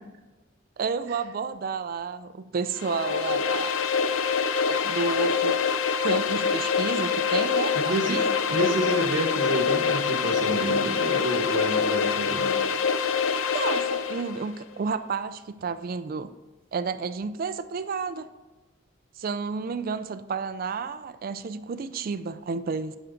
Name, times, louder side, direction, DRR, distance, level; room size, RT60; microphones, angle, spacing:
voice 1, 0.8-3.8 4.7-5.6 6.0-8.3 13.5-16.3 16.7-18.3 19.2-23.0, right 5 dB, 45° right, 12 dB, 0.4 m, -31 dB
sound 1, 2.7-14.4, left 6 dB, 85° left, 0.6 m, -25 dB
voice 2, 7.7-12.6, right 1 dB, 65° right, 1 dB, 1.1 m, -29 dB
10.0 x 6.1 x 3.8 m, 1.2 s
head